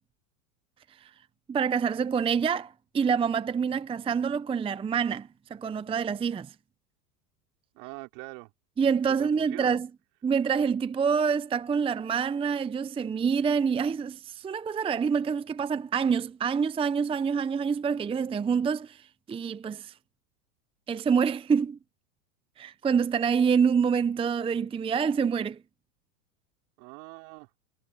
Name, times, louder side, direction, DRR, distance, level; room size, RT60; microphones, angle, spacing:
voice 1, 1.5-6.5 8.8-9.9 10.2-19.0 19.3-19.9 20.9-21.8 22.6-25.6, right 6 dB, 10° right, 0.7 m, -26 dB
voice 2, 7.7-8.5 9.2-9.7 26.8-27.5, right 32 dB, 60° right, 4.0 m, -43 dB
hypercardioid pair, 105°, 46 cm